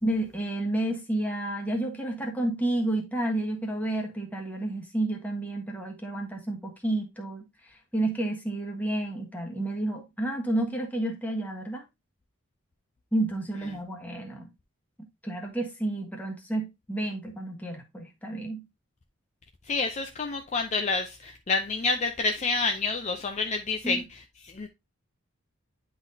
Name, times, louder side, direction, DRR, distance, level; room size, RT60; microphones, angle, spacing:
voice 1, 0.0-11.8 13.1-14.5 15.2-18.6 23.8-24.0, right 1 dB, 10° left, 1.4 m, -30 dB
voice 2, 19.6-24.7, left 3 dB, 35° left, 0.5 m, -28 dB
10.0 x 3.8 x 2.7 m
head